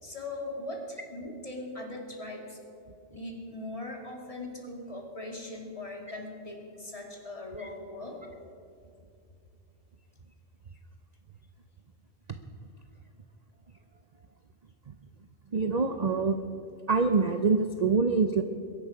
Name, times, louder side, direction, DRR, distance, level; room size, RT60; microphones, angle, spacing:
voice 1, 0.0-2.6 3.1-8.2, left 2 dB, 30° left, 0 dB, 2.4 m, -40 dB
voice 2, 15.5-16.4 16.9-18.4, right 4 dB, 45° right, 7 dB, 0.6 m, -25 dB
22.0 x 11.0 x 5.0 m, 2.5 s
omnidirectional pair, 1.2 m